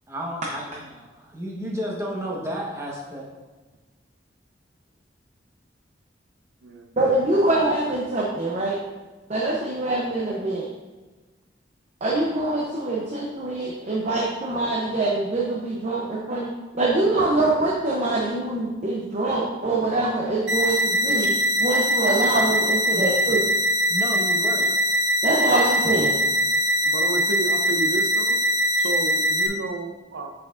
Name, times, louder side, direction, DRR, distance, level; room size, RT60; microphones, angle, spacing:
voice 1, 0.1-3.3 22.9-23.4 23.9-24.7, equal, 15° right, -3 dB, 1.2 m, -32 dB
voice 2, 7.0-8.8 9.3-10.7 12.0-21.3 21.6-23.4 25.2-26.2, right 2 dB, 40° right, -3 dB, 0.7 m, -24 dB
sound 1, 20.5-29.5, equal, 70° right, 0.9 m, -22 dB
voice 3, 26.8-28.4 28.8-30.3, right 3 dB, 85° right, 4 dB, 0.7 m, -31 dB
7.2 x 5.8 x 2.5 m, 1.3 s
head